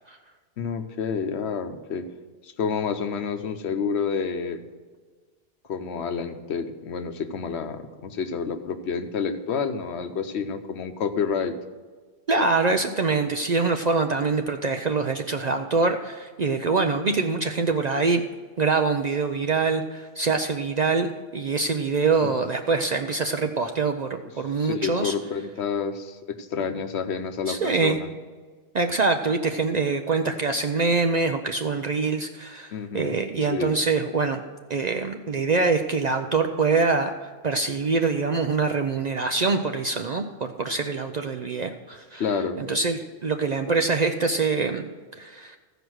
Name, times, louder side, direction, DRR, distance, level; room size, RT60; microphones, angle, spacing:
voice 1, 0.6-2.1 2.4-4.6 5.7-11.6 22.4-22.5 24.6-28.1 32.7-33.2 33.5-33.7 42.1-42.6, left 6 dB, 85° left, 8 dB, 1.1 m, -29 dB
voice 2, 12.3-18.2 18.6-21.1 21.3-24.1 24.4-25.1 27.5-28.0 28.7-34.4 34.7-42.2 42.6-44.8 45.2-45.6, right 4 dB, 50° right, 5 dB, 0.6 m, -24 dB
15.0 x 5.0 x 6.2 m, 1.4 s
omnidirectional pair, 1.1 m